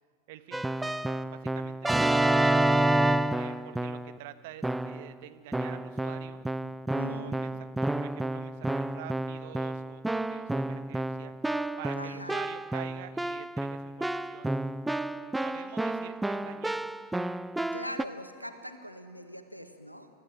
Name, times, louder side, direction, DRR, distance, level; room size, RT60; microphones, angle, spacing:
voice 1, 0.3-0.9 1.2-2.9 3.3-6.4 7.1-7.5 7.8-11.3 11.8-14.5 15.2-16.9, right 14 dB, 50° right, 10 dB, 1.2 m, -47 dB
Keyboard (musical), 0.5-4.2 4.6-5.1 5.5-18.0, right 1 dB, 5° right, 0.5 m, -30 dB
voice 2, 7.0-7.4 11.9-12.4 17.7-20.1, equal, 90° left, 8 dB, 1.6 m, -41 dB
28.0 x 14.5 x 9.3 m, 2.4 s
figure-of-eight pair, 90°, 0 cm